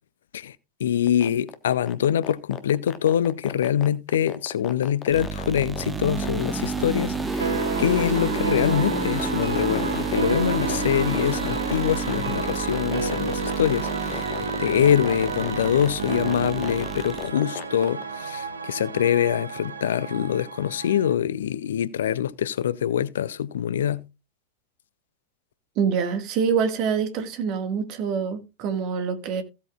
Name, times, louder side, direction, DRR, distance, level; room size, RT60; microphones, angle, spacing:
voice 1, 0.3-7.5 7.8-24.0, left 9 dB, 60° left, 0.5 m, -24 dB
sound 1, 1.1-18.0, left 11 dB, 35° left, 1.3 m, -36 dB
sound 2, 5.1-17.3, right 4 dB, 10° right, 1.4 m, -30 dB
sound 3, 7.4-21.1, right 4 dB, 75° right, 1.0 m, -31 dB
voice 2, 25.7-29.4, right 6 dB, 40° right, 1.7 m, -25 dB
16.0 x 8.4 x 2.4 m
figure-of-eight pair, 90°, 0 cm